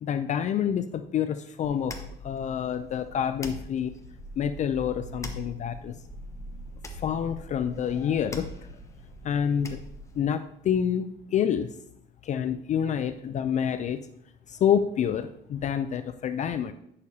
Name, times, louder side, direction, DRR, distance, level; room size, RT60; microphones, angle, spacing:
voice 1, 0.0-3.9 4.4-6.0 7.0-8.5 9.2-9.8 10.2-11.7 12.2-14.1 14.5-16.7, left 8 dB, 45° left, 10 dB, 0.4 m, -28 dB
sound 1, 1.6-10.2, equal, 15° left, 0.9 m, -42 dB
9.8 x 6.7 x 2.8 m, 0.74 s
cardioid pair, 110°, 17 cm